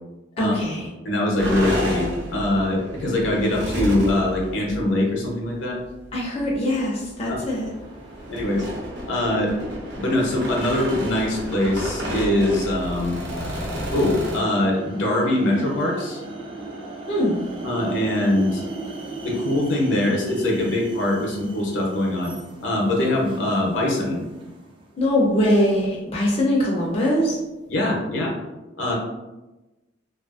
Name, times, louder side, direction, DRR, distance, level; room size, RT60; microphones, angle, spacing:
voice 1, 0.4-0.9 6.1-7.7 17.1-17.4 25.0-27.4, left 1 dB, 30° left, -5 dB, 0.5 m, -22 dB
voice 2, 1.0-5.8 7.3-7.4 8.3-8.6 9.1-9.6 10.0-13.2 13.9-16.2 17.6-18.6 19.2-22.3 22.6-24.2 27.7-28.3 28.8-28.9, left 1 dB, 70° left, -2 dB, 0.7 m, -22 dB
sound 1, 1.4-4.9 5.9-6.0 6.4-6.6 7.0-14.4, equal, 60° right, 0.7 m, -31 dB
sound 2, 7.5-25.0, right 2 dB, 25° right, 0.3 m, -39 dB
2.6 x 2.4 x 2.4 m, 1.1 s
head